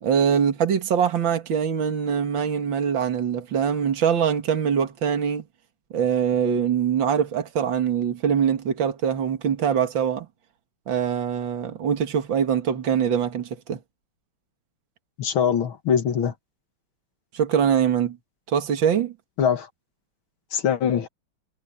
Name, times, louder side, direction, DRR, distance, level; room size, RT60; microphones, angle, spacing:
voice 1, 0.0-5.4 5.9-10.3 10.9-13.8 17.3-18.2 18.5-19.1, right 7 dB, 65° right, 2.6 m, -23 dB
voice 2, 15.2-16.3 19.4-19.7 20.5-21.1, left 8 dB, 75° left, 2.3 m, -22 dB
omnidirectional pair, 2.3 m